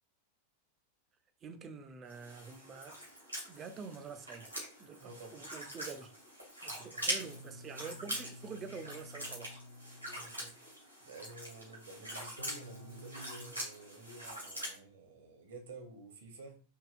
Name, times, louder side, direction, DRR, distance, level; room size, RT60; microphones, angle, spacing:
voice 1, 1.4-3.0 3.5-4.5 4.8-5.0 5.3-6.1 6.6-9.5, right 5 dB, 25° right, 0.5 m, -47 dB
sound 1, 2.1-14.8, equal, 90° right, 2.0 m, -43 dB
voice 2, 5.0-5.5 6.7-7.1 10.1-10.6 11.0-16.6, right 3 dB, 60° right, 0.9 m, -51 dB
sound 2, 7.2-10.6 12.4-13.5, left 1 dB, 75° left, 0.5 m, -52 dB
4.6 x 2.9 x 2.4 m
figure-of-eight pair, 90°, 0 cm